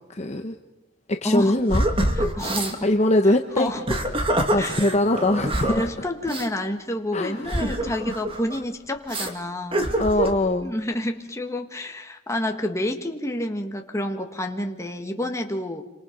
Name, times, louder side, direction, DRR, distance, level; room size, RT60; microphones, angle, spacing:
voice 1, 0.1-0.5 1.2-1.8 2.8-3.7 4.5-5.9 7.1-7.5 10.0-10.7, left 1 dB, 35° left, 5 dB, 1.0 m, -22 dB
voice 2, 1.2-1.8 2.1-2.9 3.3-3.8 4.6-4.8 5.7-9.9 10.6-15.8, left 1 dB, 15° left, 4 dB, 1.8 m, -29 dB
sound 1, 1.7-2.8 3.7-5.8 6.3-6.5 7.4-8.6 9.1-9.3 9.7-10.4, right 1 dB, 25° right, 2.3 m, -25 dB
27.5 x 25.5 x 5.3 m, 0.99 s
head